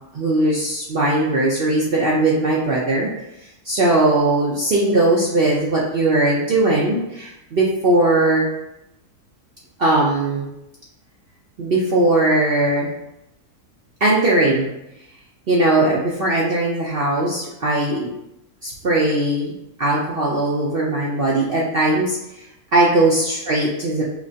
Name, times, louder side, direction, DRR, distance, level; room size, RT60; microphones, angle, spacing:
voice 1, 0.1-3.1 3.6-8.5 9.8-10.5 11.6-12.9 14.0-14.7 15.5-18.1 18.6-19.5 19.8-22.2 22.7-24.0, right 2 dB, 55° right, -4 dB, 0.7 m, -19 dB
5.0 x 3.2 x 2.7 m, 0.87 s
omnidirectional pair, 1.6 m